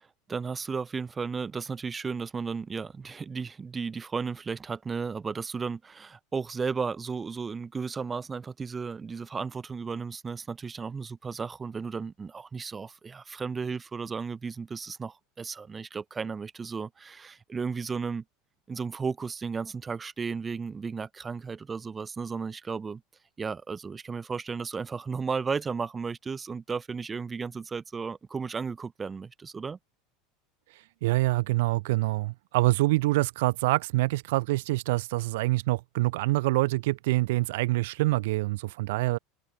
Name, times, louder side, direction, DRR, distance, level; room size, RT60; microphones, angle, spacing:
voice 1, 0.0-18.2 18.7-23.0 23.4-29.8, right 5 dB, 15° right, 1.9 m, -34 dB
voice 2, 31.0-39.2, right 20 dB, 75° right, 0.8 m, -26 dB
supercardioid pair, 155°, 0 cm